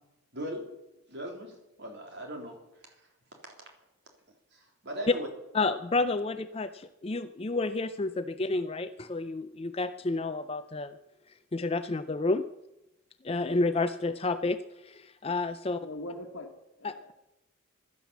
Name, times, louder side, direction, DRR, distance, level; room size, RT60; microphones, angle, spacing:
voice 1, 0.3-0.7 1.1-3.1 4.5-5.3, right 1 dB, 50° right, 3.6 m, -39 dB
voice 2, 5.5-11.0 11.5-12.5 13.2-15.8 16.8-17.0, left 3 dB, 25° left, 0.5 m, -30 dB
voice 3, 15.8-17.1, left 1 dB, 60° left, 1.4 m, -42 dB
16.5 x 12.0 x 7.1 m
head